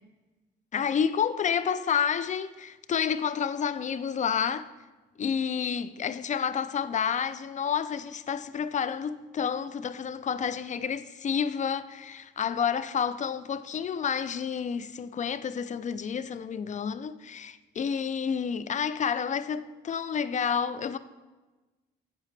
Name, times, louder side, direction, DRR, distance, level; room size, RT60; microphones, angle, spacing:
voice 1, 0.7-4.7 5.2-21.0, left 7 dB, 40° left, 0.4 m, -29 dB
8.8 x 8.3 x 3.3 m
cardioid pair, 90°, 20 cm